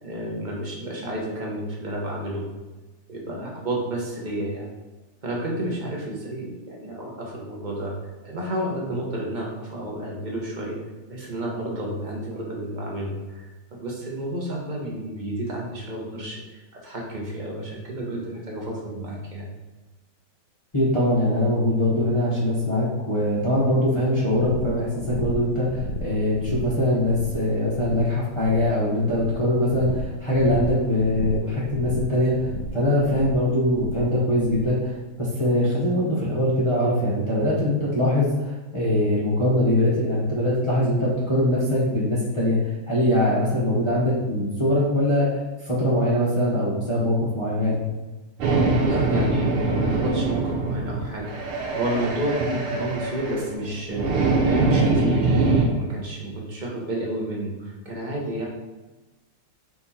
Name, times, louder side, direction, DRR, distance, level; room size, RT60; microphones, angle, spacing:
voice 1, 0.0-2.4 3.1-4.7 5.2-7.9 8.2-10.8 11.1-19.5 48.9-58.5, right 1 dB, 35° right, -3 dB, 0.7 m, -31 dB
voice 2, 20.7-42.6 42.9-45.3 45.6-47.8, left 1 dB, 25° left, -9 dB, 0.7 m, -22 dB
sound 1, 24.3-34.8, left 1 dB, 80° left, 0.9 m, -34 dB
sound 2, 48.4-55.7, right 3 dB, 85° right, 1.9 m, -23 dB
5.5 x 4.3 x 4.2 m, 1.2 s
omnidirectional pair, 2.4 m